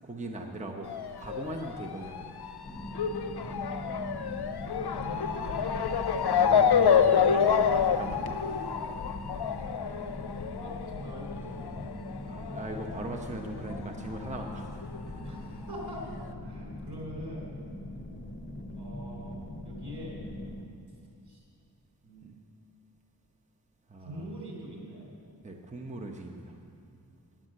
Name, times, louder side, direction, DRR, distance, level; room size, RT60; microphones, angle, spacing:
voice 1, 0.0-0.9 1.2-2.4 6.2-8.2 12.3-15.4 22.2-22.3 23.9-24.3 25.4-26.6, right 2 dB, 15° right, 2 dB, 0.9 m, -39 dB
Motor vehicle (road) / Siren, 0.8-13.9 14.1-15.3 15.9-16.0 16.3-16.4, left 7 dB, 70° left, 0.6 m, -28 dB
sound 1, 2.6-20.7, left 1 dB, 25° left, 1.0 m, -41 dB
voice 2, 4.9-5.7 7.7-8.0 8.4-8.5 10.6-11.7 15.2-16.0 16.4-17.5 18.7-19.4 19.6-20.2 21.3-21.4 22.0-22.4 24.0-25.1, equal, 70° right, -3 dB, 3.6 m, -43 dB
9.5 x 9.0 x 7.6 m, 2.5 s
wide cardioid pair, 60°, 41 cm